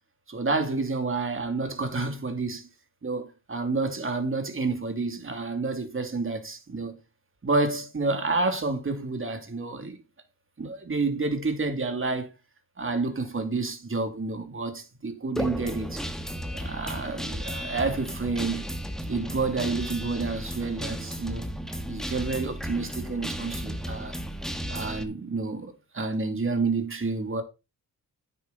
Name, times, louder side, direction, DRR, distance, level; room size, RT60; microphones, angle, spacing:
voice 1, 0.3-2.7 3.0-7.0 7.4-10.0 10.6-12.3 12.8-16.0 16.5-18.6 19.1-21.5 21.9-24.1 24.7-27.4, right 3 dB, 35° right, 2.7 m, -29 dB
Guitar, 15.4-25.0, equal, ahead, 1.6 m, -34 dB
9.7 x 8.4 x 4.0 m
cardioid pair, 85°, 35 cm